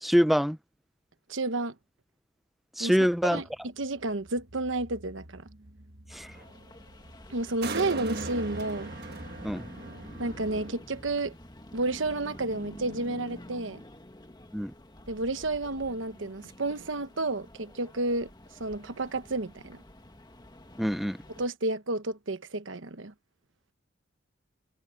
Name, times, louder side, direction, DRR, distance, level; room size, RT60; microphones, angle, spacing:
voice 1, 0.0-0.6 2.8-3.4 6.1-6.3 9.4-9.6 14.5-14.7 20.8-21.2, equal, ahead, 0.6 m, -25 dB
voice 2, 1.3-1.7 2.8-2.9 3.3-3.4 3.8-5.5 7.3-8.9 10.2-11.3 11.7-13.8 15.1-18.3 18.6-19.8 21.4-23.1, right 2 dB, 75° right, 1.2 m, -31 dB
sound 1, 3.0-10.7, right 2 dB, 55° right, 1.6 m, -41 dB
sound 2, 6.1-21.5, left 1 dB, 20° left, 1.9 m, -49 dB
head